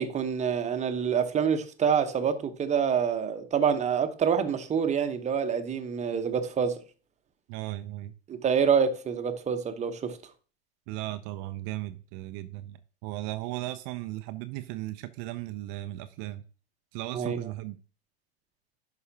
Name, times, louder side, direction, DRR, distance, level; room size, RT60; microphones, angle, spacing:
voice 1, 0.0-6.8 8.3-10.2 17.1-17.4, right 7 dB, 20° right, 1.0 m, -27 dB
voice 2, 7.5-8.1 10.9-16.4 16.9-17.8, right 16 dB, 45° right, 0.6 m, -36 dB
11.0 x 4.9 x 2.8 m
hypercardioid pair, 95°, 32 cm